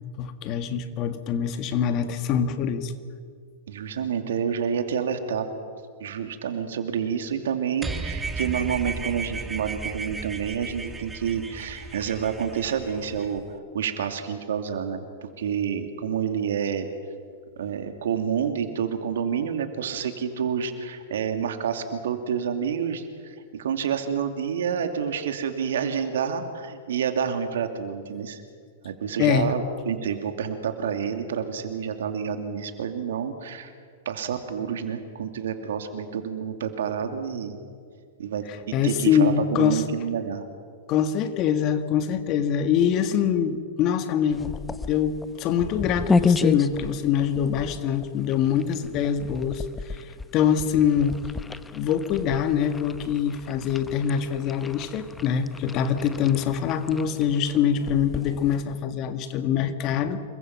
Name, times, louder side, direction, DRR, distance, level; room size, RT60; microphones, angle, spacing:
voice 1, 0.2-2.9 29.2-29.5 38.5-39.8 40.9-44.5 44.9-51.2 51.7-60.2, left 8 dB, 40° left, 9 dB, 2.0 m, -24 dB
voice 2, 3.7-5.5 6.0-13.4 13.7-16.9 17.6-28.4 28.8-33.7 34.1-37.5 38.2-40.4, right 7 dB, 75° right, 6 dB, 2.6 m, -28 dB
sound 1, 7.8-13.4, right 4 dB, 15° right, 1.7 m, -34 dB
sound 2, 44.3-58.8, left 4 dB, 15° left, 1.0 m, -32 dB
28.0 x 23.0 x 6.0 m, 2.1 s
hypercardioid pair, 105°, 0 cm